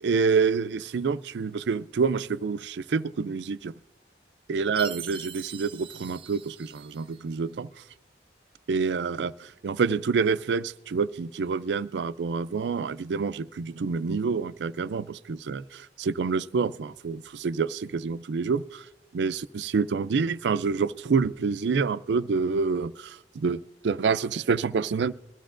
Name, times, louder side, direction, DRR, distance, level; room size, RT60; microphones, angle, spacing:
voice 1, 0.0-3.7 4.5-7.7 8.7-18.8 19.1-25.1, right 5 dB, 80° right, 0.4 m, -27 dB
Chime, 4.8-7.2, right 7 dB, 30° right, 0.5 m, -41 dB
21.5 x 13.5 x 2.5 m
head